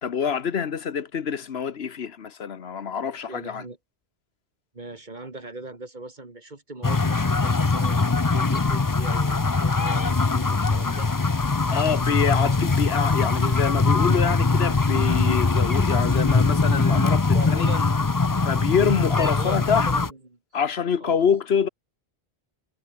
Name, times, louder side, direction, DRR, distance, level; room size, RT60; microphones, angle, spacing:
voice 1, 0.0-3.6 11.7-17.7 18.4-19.9 20.5-21.7, left 7 dB, 70° left, 1.3 m, -26 dB
voice 2, 3.2-3.8 4.7-8.0 8.3-11.1 17.3-17.8 19.2-20.4 21.0-21.3, right 2 dB, 45° right, 2.7 m, -40 dB
sound 1, 6.8-20.1, left 3 dB, 20° left, 0.6 m, -22 dB
omnidirectional pair, 1.1 m